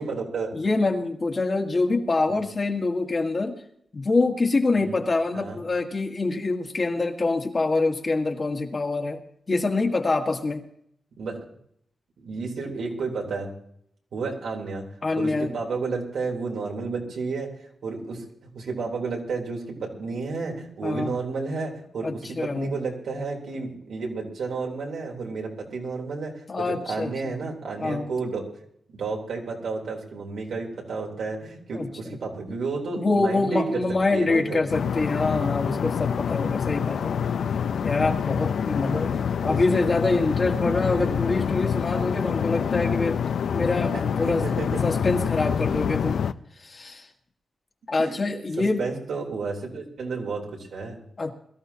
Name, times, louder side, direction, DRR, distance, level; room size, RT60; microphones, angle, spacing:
voice 1, 0.0-0.6 2.3-2.4 4.7-5.0 5.3-5.6 11.2-11.4 12.2-13.5 14.1-14.8 15.2-17.5 17.8-18.2 18.5-28.4 28.9-33.8 34.1-34.6 37.2-37.6 38.9-39.1 39.4-39.6 40.5-41.1 43.9-44.8 48.0-48.2 48.6-51.0, right 4 dB, 85° right, 0 dB, 3.6 m, -31 dB
voice 2, 0.5-3.6 3.9-9.2 9.5-10.6 15.0-15.5 20.8-21.1 22.0-22.7 26.5-27.3 27.8-28.1 31.7-32.2 33.0-37.1 37.8-39.1 39.4-43.2 43.5-44.4 44.8-46.2 46.6-47.1 47.9-48.8 51.2-51.3, left 3 dB, 35° left, 3 dB, 1.7 m, -25 dB
sound 1, 34.7-46.3, left 7 dB, 80° left, 0.5 m, -26 dB
22.0 x 14.0 x 2.9 m, 0.70 s
wide cardioid pair, 120°, 0 cm